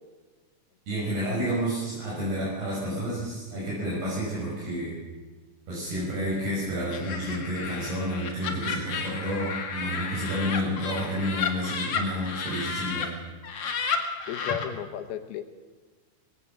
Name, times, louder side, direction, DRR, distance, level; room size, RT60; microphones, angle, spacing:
voice 1, 0.9-4.9 5.7-13.1, equal, 65° right, -6 dB, 7.9 m, -30 dB
Laughter, 6.9-13.1 13.4-14.6, left 6 dB, 45° left, 2.3 m, -32 dB
voice 2, 14.3-15.4, left 10 dB, 70° left, 6 dB, 2.7 m, -34 dB
21.0 x 17.0 x 7.4 m, 1.3 s
omnidirectional pair, 4.9 m